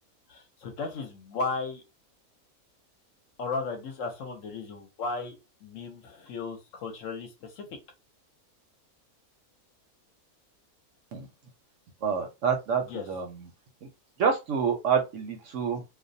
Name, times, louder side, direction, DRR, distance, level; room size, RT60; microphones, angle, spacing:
voice 1, 0.3-1.8 3.4-5.3 5.6-7.8 12.9-13.0, left 4 dB, 65° left, 4 dB, 0.9 m, -35 dB
voice 2, 12.0-13.5 13.8-13.9 14.2-15.8, right 6 dB, 65° right, 4 dB, 0.8 m, -28 dB
2.4 x 2.0 x 2.5 m, 0.25 s
omnidirectional pair, 1.5 m